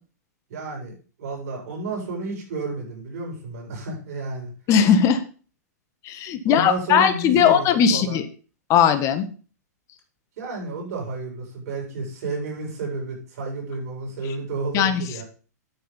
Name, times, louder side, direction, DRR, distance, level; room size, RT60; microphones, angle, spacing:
voice 1, 0.5-4.5 6.4-8.2 10.4-15.2, right 3 dB, 60° right, 0 dB, 7.6 m, -31 dB
voice 2, 4.7-5.2 6.0-8.2 8.7-9.3 14.7-15.0, left 8 dB, 35° left, 10 dB, 1.8 m, -18 dB
9.9 x 8.9 x 5.4 m, 0.38 s
hypercardioid pair, 110°, 9 cm